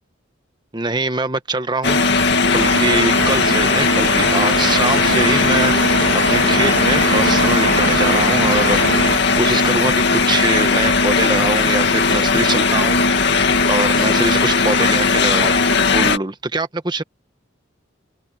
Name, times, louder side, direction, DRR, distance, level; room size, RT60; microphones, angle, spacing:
voice 1, 0.7-2.0 2.5-5.7 6.3-8.8 9.3-13.0 13.7-15.6 15.9-17.0, right 2 dB, 20° right, 1.2 m, -23 dB
sound 1, 1.8-16.2, left 4 dB, 55° left, 2.2 m, -17 dB
sound 2, 2.5-9.2, right 3 dB, 80° right, 2.6 m, -23 dB
open air
head